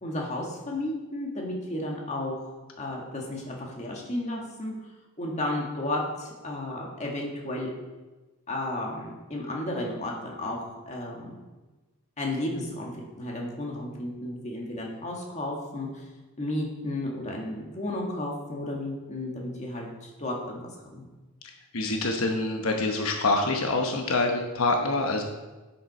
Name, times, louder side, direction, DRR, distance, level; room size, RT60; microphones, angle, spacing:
voice 1, 0.0-4.7 5.2-7.7 8.5-11.5 12.2-12.9 13.2-16.0 16.4-21.1, left 1 dB, 35° left, -1 dB, 1.9 m, -33 dB
voice 2, 21.7-25.2, left 2 dB, 75° left, 2 dB, 1.0 m, -26 dB
10.5 x 7.7 x 4.3 m, 1.2 s
head